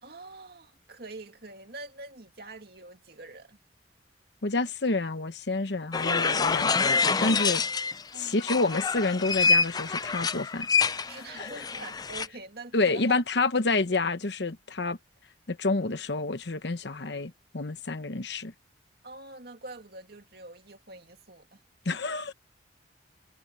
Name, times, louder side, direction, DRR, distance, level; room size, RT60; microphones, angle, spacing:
voice 1, 0.0-3.6 8.1-8.5 11.1-13.2 19.0-21.6, right 2 dB, 55° right, 2.4 m, -45 dB
voice 2, 4.4-7.6 8.1-10.7 11.0-11.1 11.3-11.5 12.7-15.0 15.5-18.5 21.8-22.3, left 3 dB, 65° left, 1.0 m, -28 dB
sound 1, 5.9-8.0 8.4-12.3, left 4 dB, 20° left, 0.4 m, -26 dB
head